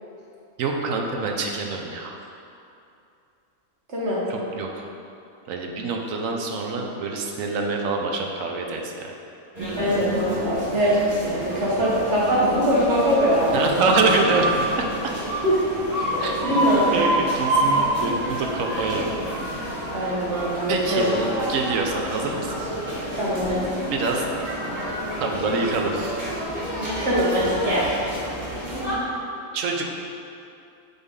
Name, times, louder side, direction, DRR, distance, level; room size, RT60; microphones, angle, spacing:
voice 1, 0.6-2.1 4.3-4.9 5.5-9.1 13.5-15.1 16.2-16.6 16.9-19.1 20.7-22.5 23.9-24.3 25.2-26.2 27.8-27.9 29.5-29.9, right 3 dB, 70° right, 2 dB, 1.0 m, -26 dB
voice 2, 3.9-4.2 9.8-13.7 15.4-15.5 16.4-17.0 19.9-21.0 23.2-23.7 26.8-28.0, equal, 50° right, -7 dB, 1.6 m, -22 dB
sound 1, 9.5-28.9, right 1 dB, 30° right, 1.3 m, -28 dB
7.9 x 3.6 x 3.6 m, 2.6 s
omnidirectional pair, 1.5 m